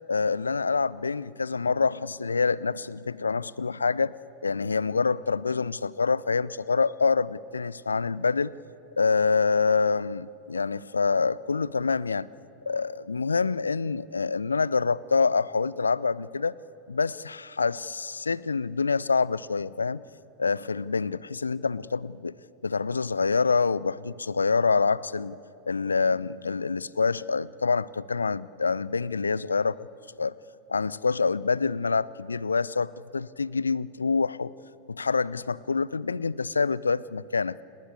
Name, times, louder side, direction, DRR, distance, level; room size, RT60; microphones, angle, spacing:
voice 1, 0.1-4.1 4.4-8.5 9.0-12.3 12.7-16.5 16.9-20.0 20.4-22.4 22.6-25.4 25.7-29.8 30.2-30.3 30.7-34.5 34.9-37.6, left 4 dB, 75° left, 21 dB, 0.5 m, -26 dB
29.5 x 19.5 x 8.2 m, 2.7 s
figure-of-eight pair, 90°, 0 cm